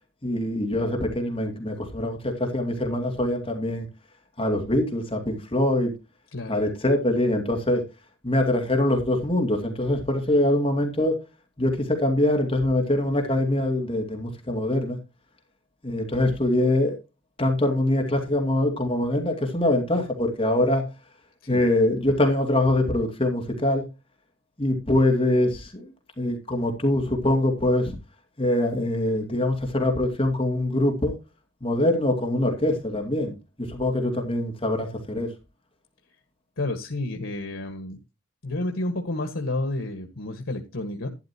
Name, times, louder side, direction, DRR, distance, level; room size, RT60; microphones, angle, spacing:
voice 1, 0.2-3.8 4.4-5.9 6.5-7.8 8.2-11.2 11.6-15.0 15.8-17.0 17.4-20.9 21.5-23.9 24.6-25.9 26.2-28.0 28.4-31.1 31.6-35.3, left 1 dB, 25° left, 2.4 m, -23 dB
voice 2, 36.6-38.0 38.4-41.1, left 2 dB, 90° left, 1.6 m, -30 dB
12.0 x 10.5 x 2.9 m
head